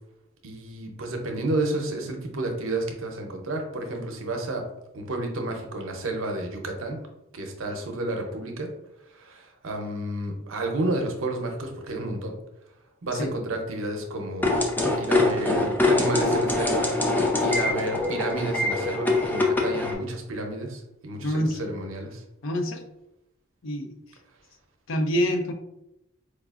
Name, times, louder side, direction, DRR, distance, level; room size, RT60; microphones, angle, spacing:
voice 1, 0.4-4.6 4.9-7.0 7.3-8.7 9.1-12.3 13.0-14.5 15.0-17.0 17.4-22.2, right 2 dB, 70° right, 3 dB, 0.7 m, -31 dB
sound 1, 14.4-19.9, left 2 dB, 10° left, 0.4 m, -23 dB
voice 2, 21.2-21.6 22.4-22.8 23.6-24.0 24.9-25.5, equal, 65° left, 5 dB, 0.5 m, -26 dB
4.6 x 2.4 x 2.4 m, 0.87 s
head